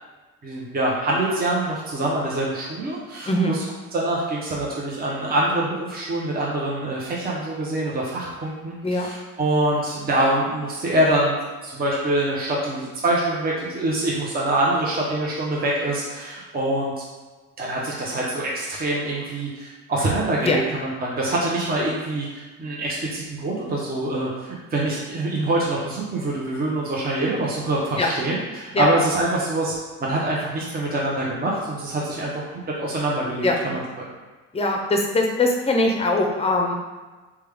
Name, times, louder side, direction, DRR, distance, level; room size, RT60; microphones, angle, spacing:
voice 1, 0.4-3.6 3.9-11.4 11.6-16.9 17.6-34.1, right 1 dB, 30° right, -4 dB, 0.7 m, -25 dB
voice 2, 3.3-3.6 8.8-9.1 20.4-20.6 28.0-28.1 28.7-28.9 33.4-33.6 34.5-36.7, left 2 dB, 20° left, 1 dB, 0.5 m, -21 dB
3.2 x 2.2 x 3.3 m, 1.3 s
cardioid pair, 90°, 30 cm